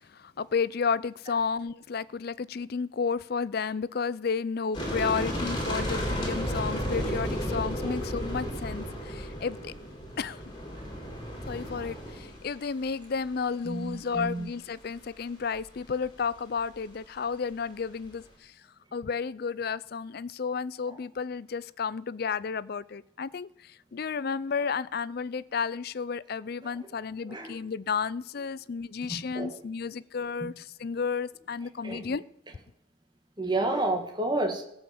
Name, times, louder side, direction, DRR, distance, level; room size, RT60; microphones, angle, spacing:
voice 1, 0.1-9.7 10.2-10.4 11.5-18.5 18.9-32.2, left 5 dB, 50° left, 0.4 m, -32 dB
sound 1, 4.7-12.6 12.8-12.9 13.1-13.2, equal, 20° left, 3.2 m, -33 dB
voice 2, 13.6-14.5 20.9-21.0 27.2-27.5 29.1-29.6 30.4-30.5 31.8-32.0 33.4-34.6, right 2 dB, 20° right, 1.8 m, -30 dB
16.5 x 5.7 x 7.8 m
head